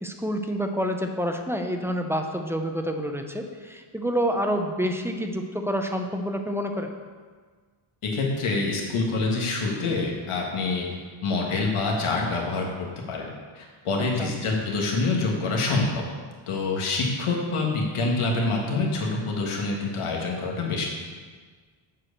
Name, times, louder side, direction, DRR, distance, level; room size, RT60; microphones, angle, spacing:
voice 1, 0.0-6.9 14.2-14.3, equal, 5° right, 4 dB, 0.5 m, -28 dB
voice 2, 8.0-10.9 11.2-12.7 13.1-16.0 16.5-20.9, left 3 dB, 80° left, -1 dB, 1.7 m, -26 dB
7.5 x 4.8 x 6.5 m, 1.5 s
wide cardioid pair, 130°, 49 cm